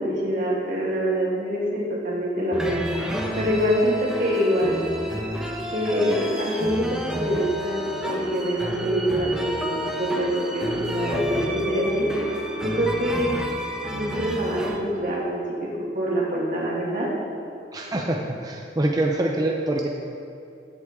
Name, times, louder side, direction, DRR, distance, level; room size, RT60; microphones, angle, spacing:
voice 1, 0.0-2.9 3.4-4.8 5.7-12.1 12.6-13.4 13.9-15.7 15.9-17.1, equal, 50° right, -4 dB, 2.4 m, -25 dB
sound 1, 2.5-14.8, equal, 5° right, 0.9 m, -31 dB
voice 2, 17.7-19.9, right 1 dB, 20° right, 0 dB, 0.6 m, -25 dB
15.0 x 7.9 x 3.6 m, 2.6 s
head